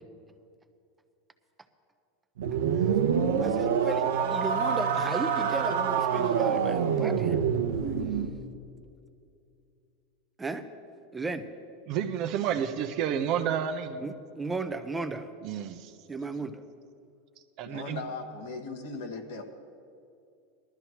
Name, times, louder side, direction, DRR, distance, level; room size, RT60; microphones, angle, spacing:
sound 1, 2.4-8.3, right 7 dB, 90° right, 0.9 m, -26 dB
voice 1, 3.4-7.4 10.4-10.7 11.1-11.5 14.0-15.3 16.1-16.6, right 3 dB, 15° right, 9 dB, 0.7 m, -35 dB
voice 2, 11.9-14.1 15.4-15.9 17.6-18.0, right 8 dB, 55° right, 7 dB, 0.8 m, -30 dB
voice 3, 17.7-19.4, left 4 dB, 85° left, 3 dB, 1.6 m, -38 dB
19.5 x 12.5 x 3.0 m, 2.5 s
supercardioid pair, 125°, 0 cm